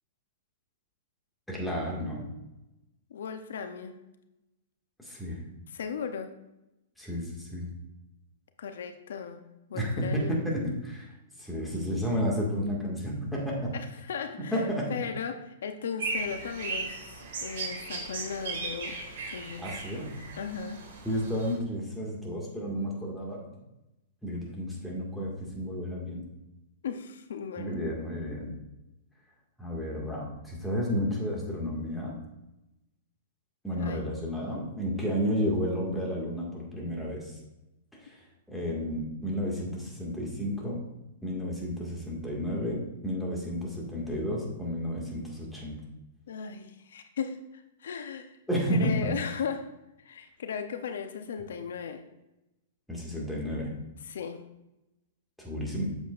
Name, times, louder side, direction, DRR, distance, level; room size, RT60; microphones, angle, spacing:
voice 1, 1.5-2.2 5.0-5.4 7.0-7.7 9.7-11.1 11.4-13.7 14.4-14.9 19.6-20.1 21.0-23.5 24.2-26.2 27.6-28.5 29.6-32.2 33.6-37.3 38.0-38.2 38.5-40.8 41.2-45.8 48.5-49.1 52.9-53.7 55.4-55.8, equal, ahead, -3 dB, 2.0 m, -31 dB
voice 2, 3.1-3.9 5.7-6.3 8.6-9.4 9.7-10.4 13.7-16.9 17.4-19.0 19.3-19.7 20.4-20.8 26.8-27.8 33.7-34.1 46.3-48.4 48.7-49.7 50.0-52.0 54.0-54.4, left 6 dB, 80° left, 8 dB, 0.7 m, -36 dB
sound 1, 16.0-21.6, right 3 dB, 65° right, 2.6 m, -37 dB
8.1 x 7.0 x 2.5 m, 0.94 s
hypercardioid pair, 140°, 0 cm